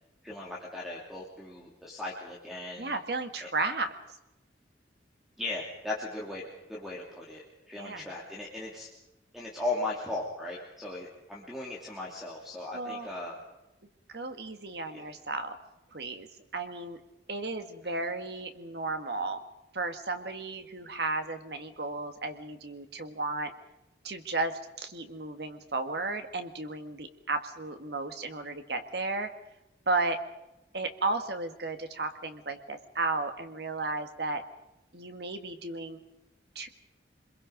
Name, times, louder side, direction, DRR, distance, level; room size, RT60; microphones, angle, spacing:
voice 1, 0.2-2.9 3.4-3.5 5.4-6.4 6.7-8.9 9.3-13.4 14.9-15.1 17.8-17.9, left 2 dB, ahead, -3 dB, 2.7 m, -37 dB
voice 2, 2.8-3.9 7.8-8.0 12.7-13.1 14.1-15.6 15.9-16.3 16.5-17.0 17.3-19.4 19.7-23.5 24.0-29.3 29.9-30.2 30.7-34.4 34.9-36.0 36.5-36.7, right 3 dB, 60° right, 7 dB, 1.7 m, -34 dB
26.0 x 22.0 x 5.2 m, 0.95 s
head